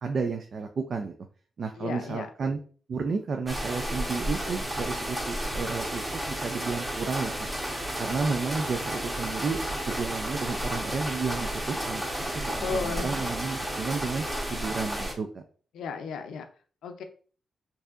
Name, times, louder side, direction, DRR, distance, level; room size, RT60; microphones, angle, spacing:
voice 1, 0.0-1.1 1.6-2.6 2.9-7.5 8.0-9.6 9.9-12.0 12.3-15.4, right 4 dB, 55° right, 5 dB, 0.4 m, -32 dB
voice 2, 1.8-2.3 12.6-13.2 15.7-16.4 16.8-17.0, left 5 dB, 90° left, 7 dB, 0.5 m, -34 dB
sound 1, 3.5-15.1, equal, 15° right, 1.1 m, -32 dB
4.6 x 2.7 x 2.5 m, 0.41 s
cardioid pair, 80°, 0 cm